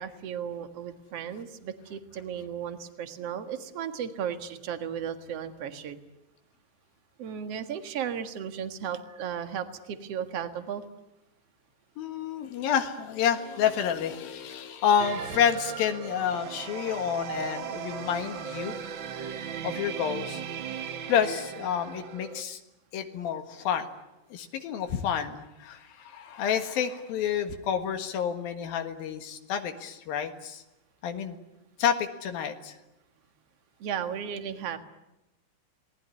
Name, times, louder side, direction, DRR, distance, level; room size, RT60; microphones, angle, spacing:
voice 1, 0.0-6.0 7.2-10.8 33.8-34.8, right 8 dB, 50° right, 8 dB, 2.4 m, -35 dB
voice 2, 12.0-18.7 19.6-20.4 21.1-22.6 22.9-23.9 24.3-30.6 31.0-31.4 31.8-32.8, left 8 dB, 85° left, 6 dB, 3.5 m, -29 dB
sound 1, 15.0-22.4, right 7 dB, 80° right, 1.0 m, -37 dB
28.5 x 19.5 x 9.8 m, 0.96 s
omnidirectional pair, 4.1 m